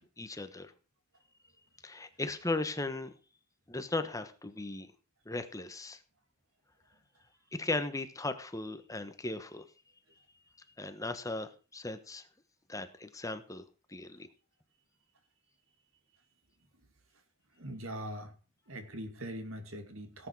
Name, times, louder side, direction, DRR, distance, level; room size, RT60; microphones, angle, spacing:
voice 1, 0.2-0.7 1.8-3.1 3.7-4.9 5.2-6.0 7.5-9.7 10.8-12.3 12.7-13.6 13.9-14.3, left 2 dB, 15° left, 10 dB, 1.2 m, -37 dB
voice 2, 17.5-18.3 18.7-20.3, equal, 75° right, 7 dB, 2.7 m, -42 dB
17.5 x 8.4 x 4.8 m, 0.35 s
head